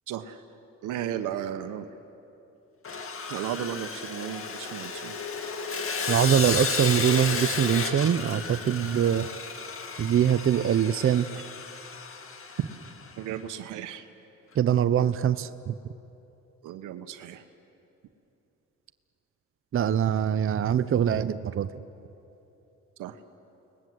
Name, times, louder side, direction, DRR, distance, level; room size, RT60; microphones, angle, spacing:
voice 1, 0.1-0.4 0.8-1.9 3.3-5.2 13.2-14.1 16.6-17.4 23.0-23.2, right 10 dB, 85° right, 9 dB, 1.2 m, -35 dB
Sawing, 2.8-13.1, left 5 dB, 45° left, 2.1 m, -33 dB
voice 2, 6.1-9.3 10.0-11.3 14.6-15.7 19.7-21.7, right 9 dB, 45° right, 12 dB, 0.7 m, -23 dB
29.5 x 20.0 x 8.0 m, 2.9 s
cardioid pair, 90°, 30 cm